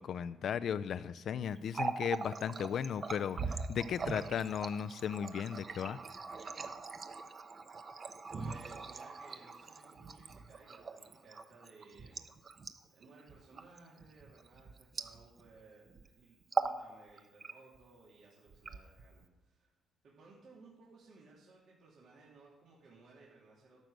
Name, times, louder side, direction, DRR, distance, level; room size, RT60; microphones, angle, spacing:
voice 1, 0.0-6.0, left 8 dB, 65° left, 13 dB, 0.3 m, -36 dB
Water tap faucet, 1.6-15.6 15.9-16.1 16.4-16.8 17.2-17.8 18.5-19.3, right 4 dB, 40° right, 0.9 m, -41 dB
voice 2, 8.3-12.5 12.9-19.7 20.0-23.8, right 3 dB, 65° right, -5 dB, 2.9 m, -60 dB
12.0 x 6.1 x 7.7 m, 1.1 s
cardioid pair, 90°, 0 cm